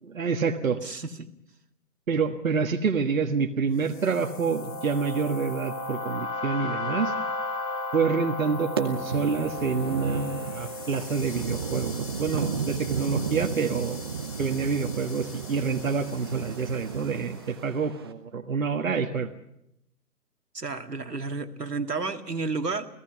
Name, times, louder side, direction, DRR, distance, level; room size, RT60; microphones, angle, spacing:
voice 1, 0.0-0.8 2.1-7.1 7.9-14.0 14.4-19.3, right 5 dB, 55° right, 4 dB, 1.6 m, -27 dB
voice 2, 0.8-1.3 20.5-22.9, right 4 dB, 75° right, 6 dB, 2.2 m, -31 dB
sound 1, 3.8-17.2, left 3 dB, 15° left, 4.2 m, -36 dB
sound 2, 8.8-18.1, right 6 dB, 15° right, 0.8 m, -34 dB
29.5 x 18.0 x 5.7 m, 0.80 s
figure-of-eight pair, 140°, 48 cm